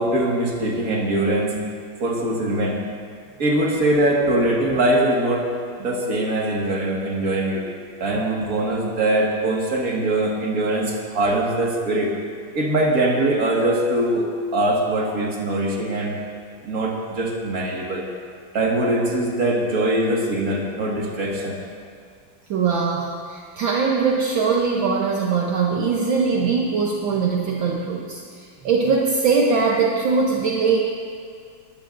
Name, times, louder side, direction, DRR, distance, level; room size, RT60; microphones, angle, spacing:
voice 1, 0.0-1.6 2.0-2.8 3.4-5.5 5.8-7.7 8.0-12.1 12.5-16.2 16.6-18.1 18.5-21.6, right 1 dB, 45° right, -2 dB, 2.2 m, -22 dB
voice 2, 22.5-30.8, right 5 dB, 70° right, -1 dB, 1.7 m, -21 dB
21.0 x 15.5 x 2.6 m, 2.1 s
omnidirectional pair, 2.3 m